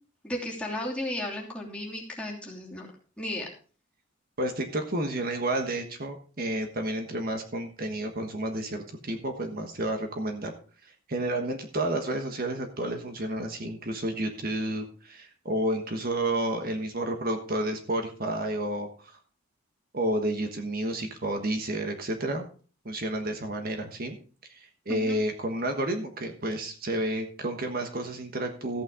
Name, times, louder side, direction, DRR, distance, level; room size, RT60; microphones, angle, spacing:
voice 1, 0.2-2.9 3.2-3.5 24.9-25.2, left 1 dB, 5° left, -3 dB, 2.9 m, -34 dB
voice 2, 4.4-10.5 10.8-19.2 19.9-22.4 22.8-24.2 24.5-28.8, right 1 dB, 45° right, 4 dB, 1.4 m, -31 dB
14.0 x 8.9 x 3.7 m, 0.40 s
head